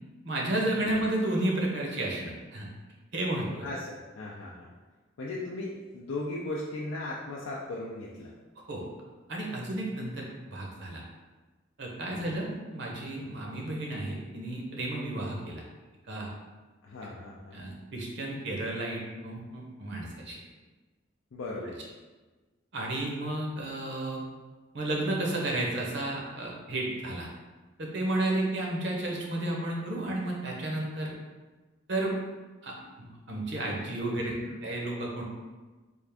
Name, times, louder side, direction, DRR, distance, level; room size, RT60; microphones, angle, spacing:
voice 1, 0.2-2.7 3.1-3.7 8.7-8.8 9.3-11.0 11.8-15.6 16.1-16.3 17.5-20.4 21.5-21.6 22.7-24.2 24.7-27.3 27.8-31.1 31.9-32.1 32.6-34.4 34.6-35.2, right 1 dB, 60° right, -2 dB, 0.7 m, -32 dB
voice 2, 3.6-4.7 5.2-8.3 12.0-12.3 16.8-17.6 21.3-21.8 32.8-32.9 34.0-34.6, left 2 dB, 85° left, -4 dB, 0.4 m, -38 dB
3.5 x 2.5 x 3.4 m, 1.3 s
head